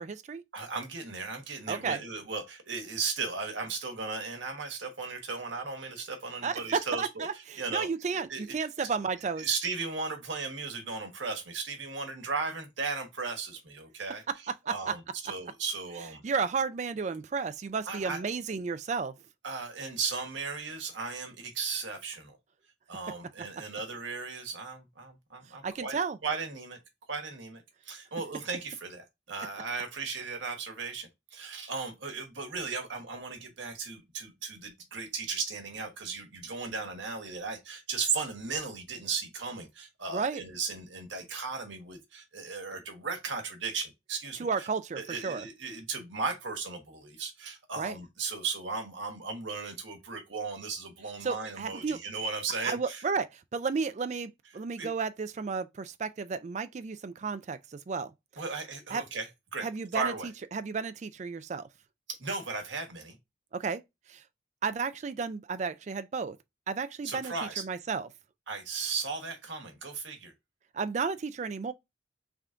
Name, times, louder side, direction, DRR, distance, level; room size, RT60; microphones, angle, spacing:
voice 1, 0.0-0.4 1.7-2.0 6.4-9.5 14.3-15.0 16.2-19.2 25.5-26.2 40.1-40.4 44.4-45.5 47.8-48.0 51.2-52.0 52.6-58.4 58.9-59.0 59.6-61.7 63.5-63.8 64.1-64.2 64.6-66.4 66.7-68.1 70.7-71.7, right 5 dB, 35° right, 0.3 m, -33 dB
voice 2, 0.5-7.3 7.6-7.9 8.1-8.6 8.8-8.9 9.4-14.2 14.7-16.2 17.9-18.2 19.4-22.4 22.9-26.8 27.1-44.7 44.9-53.0 54.8-54.9 58.4-60.3 62.2-63.2 67.0-67.6 68.5-70.3, right 4 dB, 75° right, 1.2 m, -36 dB
3.5 x 2.5 x 4.4 m
head